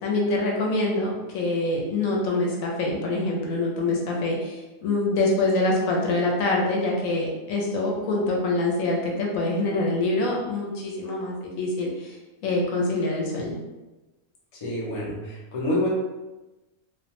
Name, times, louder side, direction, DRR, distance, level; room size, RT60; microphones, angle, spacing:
voice 1, 0.0-12.2 12.4-13.6, left 2 dB, 75° left, -2 dB, 1.0 m, -25 dB
voice 2, 14.5-15.9, left 1 dB, 50° left, -5 dB, 0.4 m, -27 dB
2.5 x 2.1 x 2.9 m, 1.1 s
omnidirectional pair, 1.5 m